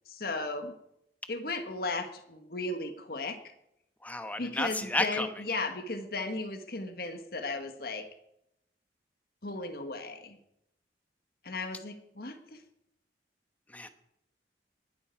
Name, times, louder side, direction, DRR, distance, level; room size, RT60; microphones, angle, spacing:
voice 1, 0.1-0.7 1.3-3.4 4.4-8.1 9.4-10.4 11.4-12.6, left 3 dB, 60° left, 7 dB, 1.4 m, -35 dB
voice 2, 4.0-5.3 13.7-13.9, left 2 dB, 10° left, 9 dB, 1.0 m, -32 dB
20.0 x 12.0 x 4.6 m, 0.80 s
head